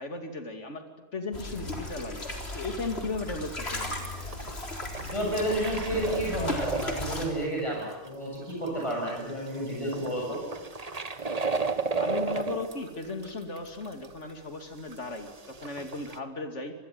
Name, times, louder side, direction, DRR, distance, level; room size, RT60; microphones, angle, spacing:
voice 1, 0.0-2.3 2.5-4.0 11.9-16.7, left 3 dB, 90° left, 6 dB, 2.8 m, -36 dB
sound 1, 1.3-7.3, left 2 dB, 65° left, 4.3 m, -36 dB
sound 2, 2.2-2.3 2.5-2.6 2.9-3.0 3.2-8.1 8.5-14.3 14.6-16.2, right 4 dB, 35° right, 1.4 m, -35 dB
voice 2, 5.1-10.4, right 1 dB, 25° left, -2 dB, 8.0 m, -31 dB
26.5 x 20.5 x 9.5 m, 1.1 s
omnidirectional pair, 1.2 m